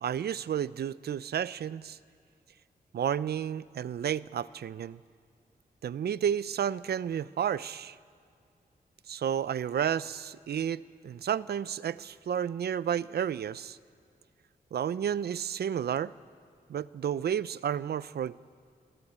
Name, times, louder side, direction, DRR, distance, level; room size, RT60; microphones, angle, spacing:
voice 1, 0.0-2.0 2.9-5.0 5.8-8.0 9.1-13.8 14.7-16.1 16.7-18.4, right 9 dB, 75° right, 18 dB, 0.5 m, -31 dB
22.0 x 18.0 x 8.8 m, 2.3 s
wide cardioid pair, 95°, 17 cm